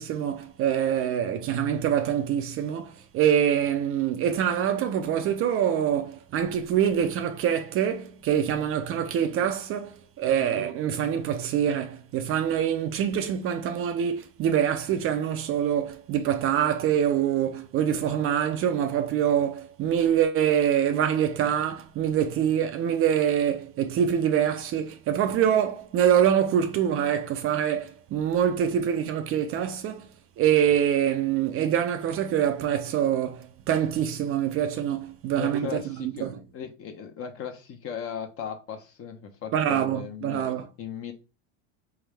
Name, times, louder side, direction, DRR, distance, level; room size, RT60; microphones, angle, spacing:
voice 1, 0.0-30.1 30.4-36.4 39.5-40.7, right 9 dB, 35° right, 0.5 m, -25 dB
voice 2, 35.4-40.5 40.8-41.1, left 8 dB, 40° left, 0.9 m, -37 dB
3.5 x 3.4 x 3.3 m
supercardioid pair, 105°, 37 cm